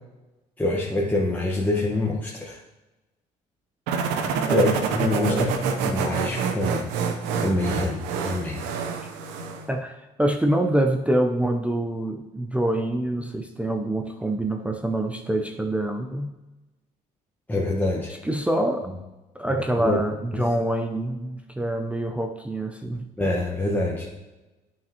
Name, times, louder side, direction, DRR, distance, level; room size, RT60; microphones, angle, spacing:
voice 1, 0.6-2.6 4.3-5.5 5.8-6.9 7.4-8.6 17.5-18.1 19.8-20.0 20.3-20.4 23.2-24.1, left 2 dB, 10° left, -4 dB, 1.1 m, -25 dB
sound 1, 3.9-9.7, right 6 dB, 85° right, 0.7 m, -27 dB
voice 2, 9.7-16.3 18.2-18.9 19.3-23.0, right 1 dB, 5° right, 4 dB, 0.5 m, -25 dB
9.1 x 5.8 x 2.9 m, 1.1 s
supercardioid pair, 70°, 17 cm